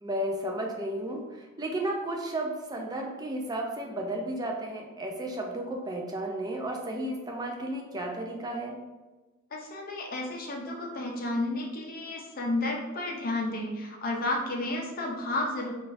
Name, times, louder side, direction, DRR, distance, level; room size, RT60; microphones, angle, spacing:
voice 1, 0.0-8.8, right 1 dB, 20° right, 1 dB, 0.4 m, -33 dB
voice 2, 9.5-15.7, left 2 dB, 40° left, 0 dB, 0.5 m, -32 dB
3.7 x 2.4 x 2.6 m, 1.2 s
head